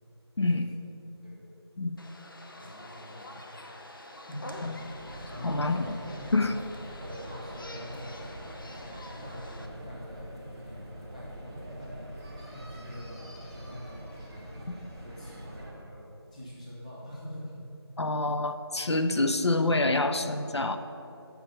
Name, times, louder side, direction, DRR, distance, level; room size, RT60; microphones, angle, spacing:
voice 1, 0.4-0.8 1.8-2.0 4.6-4.7 5.4-6.0 6.3-6.6 18.0-20.8, left 2 dB, 80° left, 8 dB, 0.7 m, -27 dB
sound 1, 2.0-9.7, left 1 dB, 50° left, 0.8 m, -46 dB
voice 2, 2.6-3.4 3.7-4.5 5.3-6.3 7.0-8.4 9.2-12.1 12.5-14.5 15.0-17.6, equal, 15° left, -7 dB, 1.0 m, -44 dB
sound 2, 4.5-15.7, right 1 dB, 10° right, 0.7 m, -44 dB
7.1 x 5.8 x 6.9 m, 2.9 s
figure-of-eight pair, 170°, 14 cm